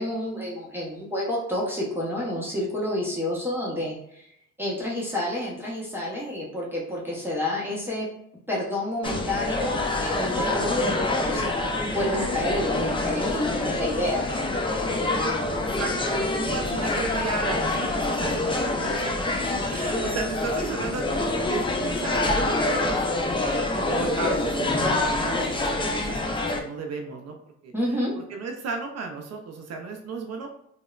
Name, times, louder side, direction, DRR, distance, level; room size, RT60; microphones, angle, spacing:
voice 1, 0.0-4.3 4.6-8.1 8.5-14.5 27.7-28.1, left 1 dB, 5° right, -6 dB, 0.7 m, -29 dB
sound 1, 9.0-26.6, left 2 dB, 15° left, 0.4 m, -26 dB
voice 2, 15.5-19.4 19.7-23.1 23.7-27.4 27.6-30.5, right 4 dB, 60° right, 3 dB, 0.4 m, -34 dB
2.8 x 2.0 x 2.3 m, 0.73 s
cardioid pair, 90°, 30 cm